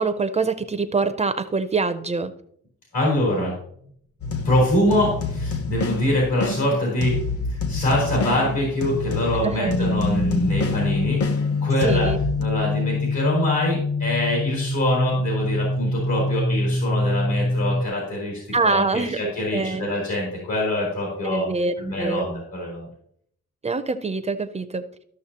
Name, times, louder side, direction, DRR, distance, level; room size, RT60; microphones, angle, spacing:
voice 1, 0.0-2.3 9.4-9.7 11.8-12.2 18.5-19.9 21.2-22.3 23.6-24.8, right 4 dB, 25° right, 9 dB, 0.4 m, -25 dB
voice 2, 2.9-3.5 4.4-7.2 7.5-12.1 12.4-21.5 21.8-22.9, left 1 dB, 75° left, -4 dB, 4.0 m, -24 dB
sound 1, 4.2-12.4, left 3 dB, 55° left, 1.1 m, -28 dB
sound 2, 9.7-17.9, left 2 dB, 30° left, 0.6 m, -24 dB
13.5 x 6.4 x 2.8 m, 0.66 s
wide cardioid pair, 155°, 29 cm